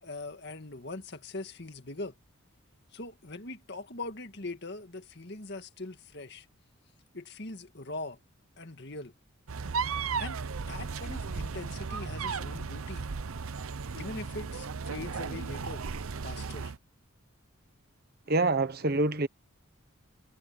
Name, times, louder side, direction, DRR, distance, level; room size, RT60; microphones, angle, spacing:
voice 1, 0.0-2.1 2.9-6.5 7.1-8.2 8.6-9.1 10.2-13.1 13.9-15.8 16.2-16.7, left 2 dB, 50° left, 2.0 m, -41 dB
sound 1, 9.5-16.8, right 5 dB, 85° right, 0.7 m, -35 dB
voice 2, 18.3-19.3, right 2 dB, 45° right, 1.2 m, -26 dB
head